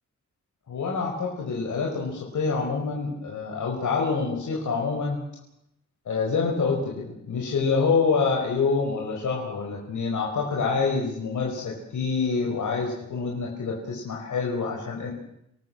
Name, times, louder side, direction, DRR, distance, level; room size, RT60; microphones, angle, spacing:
voice 1, 0.7-5.2 6.0-15.1, left 4 dB, 85° left, -1 dB, 5.1 m, -26 dB
27.5 x 18.5 x 7.9 m, 0.78 s
wide cardioid pair, 150°, 29 cm